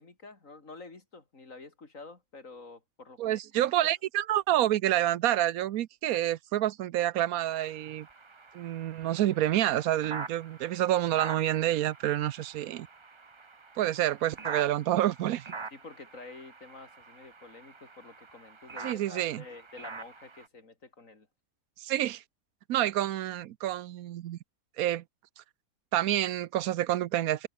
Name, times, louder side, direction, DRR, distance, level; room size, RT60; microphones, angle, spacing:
voice 1, 0.0-3.9 15.7-21.3, left 3 dB, 65° left, 3.7 m, -49 dB
voice 2, 3.2-8.1 8.5-12.9 13.8-15.5 18.8-19.4 21.8-22.2 22.7-24.4 24.8-25.0 25.4-25.5 25.9-27.5, right 13 dB, 80° right, 1.1 m, -28 dB
sound 1, 7.4-20.5, right 4 dB, 25° right, 0.8 m, -45 dB
omnidirectional pair, 1.5 m